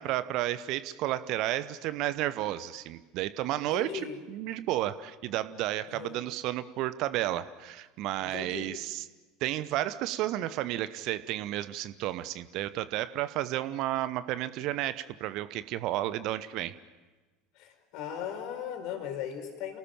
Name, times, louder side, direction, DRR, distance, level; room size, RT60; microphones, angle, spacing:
voice 1, 0.0-9.1 9.4-16.7, right 14 dB, 50° right, 15 dB, 0.9 m, -32 dB
voice 2, 3.7-4.2 5.9-6.2 8.2-8.7 17.6-19.8, left 9 dB, 50° left, 5 dB, 4.5 m, -38 dB
28.5 x 18.0 x 8.9 m, 1.2 s
figure-of-eight pair, 75°, 0 cm